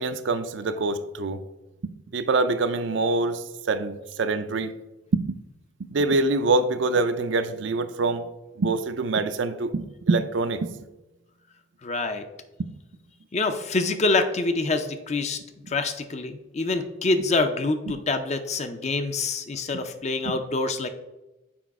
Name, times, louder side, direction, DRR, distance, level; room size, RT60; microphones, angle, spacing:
voice 1, 0.0-1.4 1.8-4.7 5.1-5.4 5.9-8.2 8.6-10.7 12.6-12.7, right 3 dB, 65° right, 10 dB, 0.5 m, -25 dB
voice 2, 11.8-12.2 13.3-15.4 15.7-20.9, left 3 dB, 35° left, 8 dB, 0.5 m, -26 dB
6.1 x 4.9 x 4.7 m, 1.0 s
head